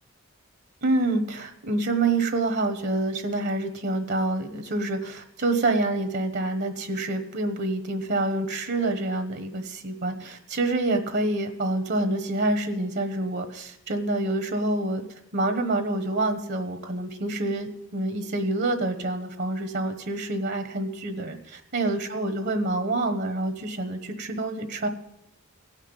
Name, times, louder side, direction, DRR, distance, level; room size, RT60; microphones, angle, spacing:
voice 1, 0.8-15.0 15.3-24.9, right 2 dB, 55° right, 7 dB, 1.2 m, -27 dB
17.5 x 5.9 x 8.9 m, 0.85 s
head